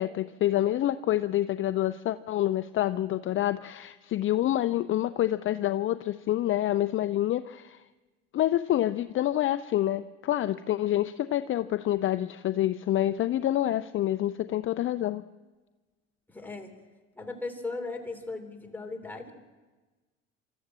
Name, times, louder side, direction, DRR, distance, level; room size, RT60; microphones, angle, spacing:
voice 1, 0.0-7.8 8.3-15.2, left 13 dB, 40° left, 12 dB, 0.6 m, -27 dB
voice 2, 16.3-16.7 17.2-19.3, left 3 dB, 5° left, 3 dB, 3.2 m, -37 dB
26.0 x 13.5 x 7.5 m, 1.3 s
supercardioid pair, 95°, 31 cm